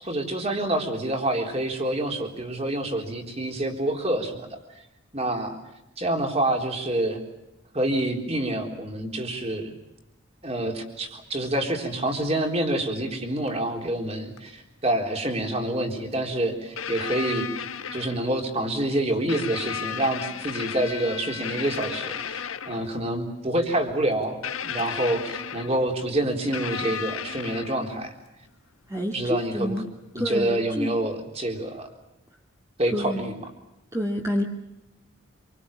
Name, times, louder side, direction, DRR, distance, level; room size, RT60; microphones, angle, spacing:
voice 1, 0.0-4.6 5.1-5.6 6.0-7.2 7.7-9.7 10.4-17.5 17.9-24.4 24.6-28.1 29.1-29.9 30.1-31.9 32.8-33.3, right 1 dB, 30° right, 3 dB, 3.8 m, -27 dB
sound 1, 13.5-13.6 14.4-14.5 16.1-16.2 16.8-18.4 19.3-22.9 24.4-25.9 26.5-28.0 29.8-29.9, left 8 dB, 90° left, 1.3 m, -34 dB
voice 2, 28.9-29.8 30.1-31.0 32.9-33.3 33.9-34.4, equal, 15° right, -1 dB, 2.0 m, -28 dB
27.0 x 24.0 x 7.2 m, 0.91 s
head